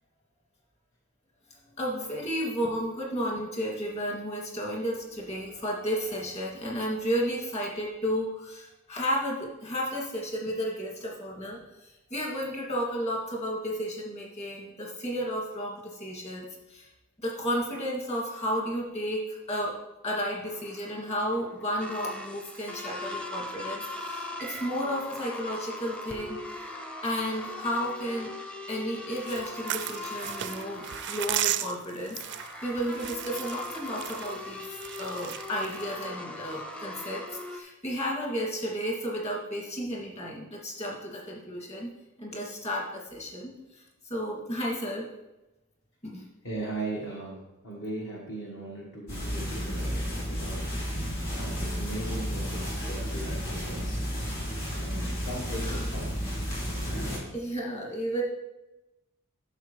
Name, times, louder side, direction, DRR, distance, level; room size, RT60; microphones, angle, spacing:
voice 1, 1.8-16.9 17.2-19.8 20.0-26.7 27.0-28.3 28.7-37.2 37.5-41.9 42.2-45.1 46.0-46.2 55.5-55.9 57.3-58.2, equal, 30° left, -3 dB, 2.3 m, -33 dB
sound 1, 20.4-37.6, left 2 dB, 5° left, 0.7 m, -40 dB
sound 2, 29.1-36.0, right 13 dB, 55° right, 0.4 m, -35 dB
voice 2, 46.4-50.6 51.4-54.0 54.8-56.1, right 2 dB, 55° left, -3 dB, 1.4 m, -38 dB
Cloth Passes, 49.1-57.2, equal, 75° left, 3.5 m, -32 dB
11.5 x 6.7 x 3.2 m, 1.0 s
head